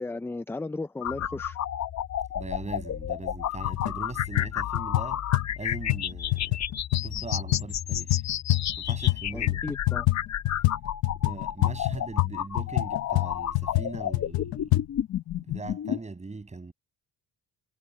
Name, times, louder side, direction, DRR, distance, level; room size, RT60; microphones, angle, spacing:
voice 1, 0.0-1.6 9.3-10.1, left 3 dB, 5° left, 0.4 m, -35 dB
sound 1, 1.0-16.0, left 10 dB, 50° left, 1.0 m, -32 dB
voice 2, 2.3-5.3 5.6-6.6 7.0-8.2 8.8-9.6 11.2-14.8 15.3-16.7, right 3 dB, 20° right, 7.0 m, -40 dB
sound 2, 3.0-3.1 3.6-3.9 4.2-9.2 9.5-14.8, left 19 dB, 85° left, 0.9 m, -27 dB
cardioid pair, 125°, 35 cm